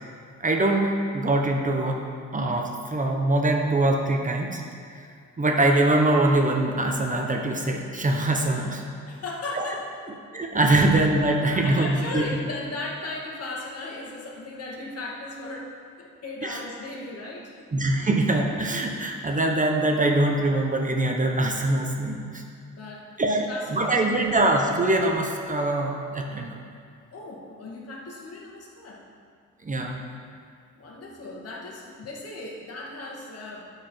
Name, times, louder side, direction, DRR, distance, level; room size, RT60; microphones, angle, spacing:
voice 1, 0.4-2.0 2.3-4.6 4.9-5.1 5.4-8.8 9.5-9.7 10.3-12.2 16.4-16.6 17.7-22.4 23.2-26.6 29.6-30.0, right 2 dB, 25° right, 2 dB, 1.0 m, -23 dB
voice 2, 9.1-10.2 11.5-15.7 16.0-17.7 18.0-18.1 22.7-24.2 27.1-29.0 30.7-33.7, left 2 dB, 55° left, -2 dB, 2.0 m, -37 dB
12.5 x 4.9 x 4.5 m, 2.2 s
cardioid pair, 90°, 30 cm